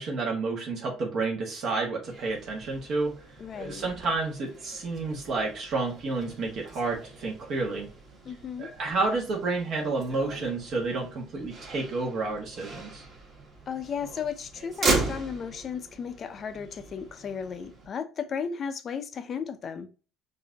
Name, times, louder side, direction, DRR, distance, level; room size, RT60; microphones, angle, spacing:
voice 1, 0.0-7.9 8.6-13.0, right 3 dB, 55° right, 1.4 m, -30 dB
Motor vehicle (road), 2.0-17.9, right 3 dB, 35° right, 1.9 m, -37 dB
voice 2, 3.4-3.9 8.3-8.7 13.7-19.9, left 7 dB, 40° left, 0.5 m, -35 dB
5.7 x 2.7 x 2.7 m
cardioid pair, 110°, 0 cm